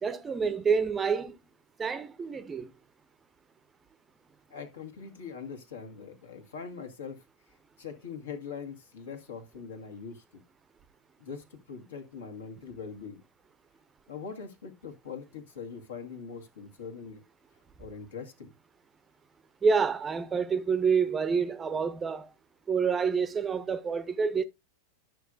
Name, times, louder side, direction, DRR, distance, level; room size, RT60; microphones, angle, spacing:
voice 1, 0.0-1.4 1.8-2.7 19.6-22.3 22.7-24.4, right 5 dB, 20° right, 0.7 m, -28 dB
voice 2, 4.5-7.2 7.8-10.4 11.2-13.2 14.1-17.2 17.8-18.5, left 6 dB, 65° left, 1.8 m, -42 dB
12.0 x 6.5 x 2.5 m
figure-of-eight pair, 90°, 0 cm